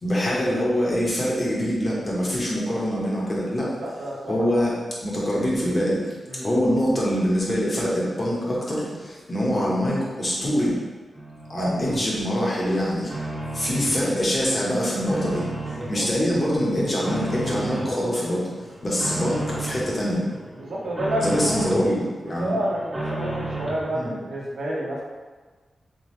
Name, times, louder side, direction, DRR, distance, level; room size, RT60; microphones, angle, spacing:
voice 1, 0.0-3.8 4.3-4.7 5.0-6.0 6.4-10.8 11.5-13.1 13.5-15.5 15.9-18.5 18.8-20.2 21.2-22.5 23.9-24.2, equal, 40° left, -5 dB, 1.4 m, -24 dB
voice 2, 3.6-4.6 6.3-6.5 11.5-11.7 15.7-16.0 20.6-21.7 22.4-25.0, right 1 dB, 80° right, -4 dB, 1.0 m, -29 dB
sound 1, 11.1-12.0 12.4-14.0 14.4-16.0 16.4-17.9 18.3-19.9 20.3-21.9 22.3-23.9, right 2 dB, 25° right, 1.4 m, -33 dB
3.8 x 3.4 x 3.3 m, 1.4 s
cardioid pair, 55°, 0 cm